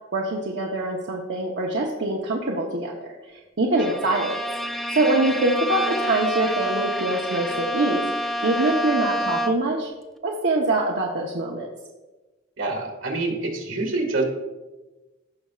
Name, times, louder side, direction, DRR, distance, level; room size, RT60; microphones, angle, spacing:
voice 1, 0.1-3.0 3.6-4.4 5.0-9.9 10.2-11.7, right 2 dB, 65° right, -2 dB, 0.9 m, -24 dB
Bowed string instrument, 3.8-9.8, equal, ahead, 0.4 m, -28 dB
voice 2, 12.6-14.2, right 2 dB, 80° right, 1 dB, 1.7 m, -26 dB
16.5 x 5.6 x 2.4 m, 1.2 s
head